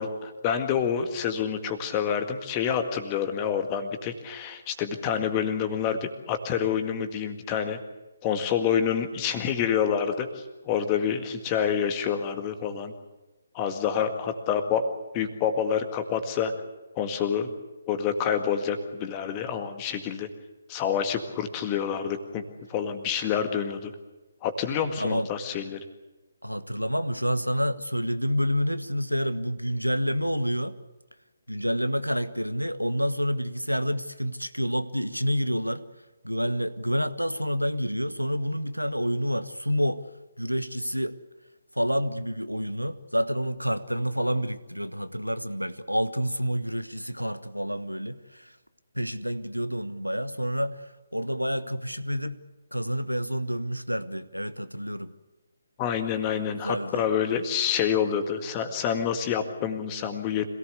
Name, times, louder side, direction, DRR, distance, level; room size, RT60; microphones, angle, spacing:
voice 1, 0.0-7.8 8.2-12.9 13.5-14.8 15.1-16.5 17.0-17.5 17.9-20.3 20.7-22.4 22.7-23.9 24.4-25.8 55.8-60.5, left 8 dB, 20° left, 7 dB, 1.9 m, -27 dB
voice 2, 25.0-25.3 26.4-30.8 31.5-35.8 36.2-40.0 40.4-41.2 41.8-48.5 48.9-50.8 51.1-52.4 52.7-55.1 56.6-57.0, equal, 90° right, 12 dB, 1.3 m, -28 dB
26.5 x 18.0 x 8.3 m, 1.1 s
figure-of-eight pair, 140°, 0 cm